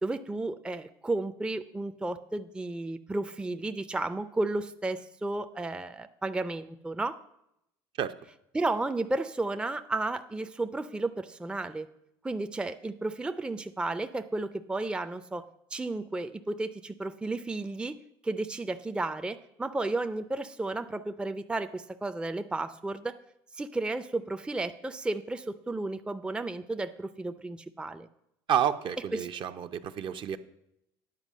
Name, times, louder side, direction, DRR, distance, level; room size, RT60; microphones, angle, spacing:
voice 1, 0.0-7.2 8.5-11.9 12.2-15.4 15.7-18.0 18.2-23.2 23.5-28.1 29.1-29.3, right 2 dB, 10° right, 9 dB, 0.4 m, -33 dB
voice 2, 28.5-30.4, right 9 dB, 50° right, 9 dB, 0.6 m, -29 dB
9.9 x 4.8 x 7.4 m, 0.80 s
supercardioid pair, 85°, 11 cm